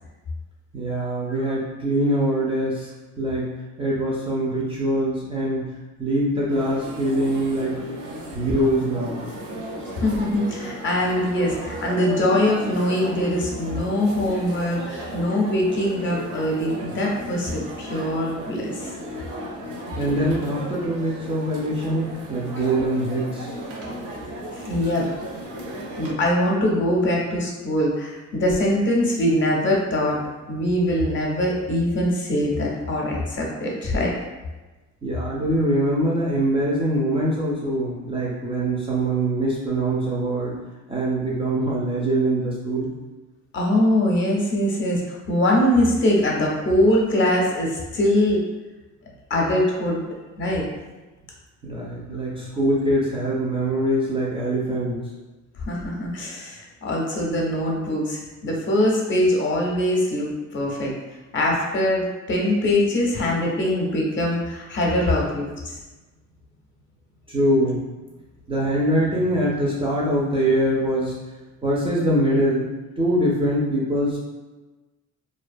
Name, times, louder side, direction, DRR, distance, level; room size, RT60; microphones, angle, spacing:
voice 1, 0.7-2.9 3.2-3.5 3.8-7.8 8.3-9.2 19.9-23.5 35.0-40.6 40.9-42.9 51.6-55.0 67.3-67.8 68.5-71.2 71.6-72.7 73.0-74.2, right 1 dB, 20° right, -6 dB, 0.3 m, -23 dB
sound 1, 6.5-26.1, right 1 dB, 75° right, 0.7 m, -35 dB
voice 2, 10.0-18.7 24.7-25.1 26.0-30.2 30.5-34.1 43.5-48.4 49.3-50.0 50.4-50.6 55.6-60.9 61.3-65.8, left 1 dB, 40° left, -2 dB, 0.5 m, -22 dB
2.4 x 2.2 x 2.5 m, 1.2 s
cardioid pair, 160°, 30 cm